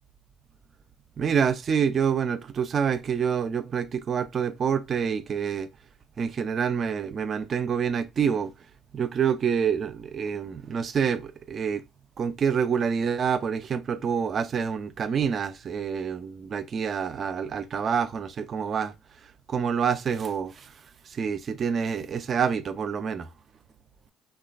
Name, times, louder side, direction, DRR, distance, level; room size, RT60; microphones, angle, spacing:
voice 1, 1.2-5.7 6.2-8.5 8.9-11.8 12.2-18.9 19.2-23.3, right 7 dB, 45° right, 0.4 m, -27 dB
3.0 x 2.3 x 2.3 m
supercardioid pair, 80°, 0 cm